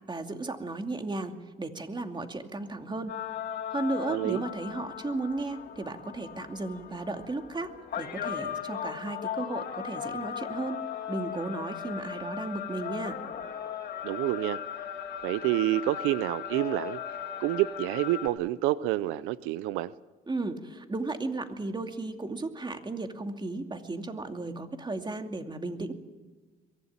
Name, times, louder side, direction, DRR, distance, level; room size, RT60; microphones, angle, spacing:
voice 1, 0.1-1.3 1.6-3.2 3.7-10.8 11.1-13.2 20.3-25.9, right 2 dB, 20° right, 2.5 m, -35 dB
sound 1, 3.1-18.3, left 8 dB, 50° left, 3.2 m, -37 dB
voice 2, 4.1-4.4 14.0-14.6 15.2-17.0 17.4-19.9, right 15 dB, 85° right, 0.6 m, -28 dB
23.0 x 15.5 x 8.8 m
supercardioid pair, 80°, 20 cm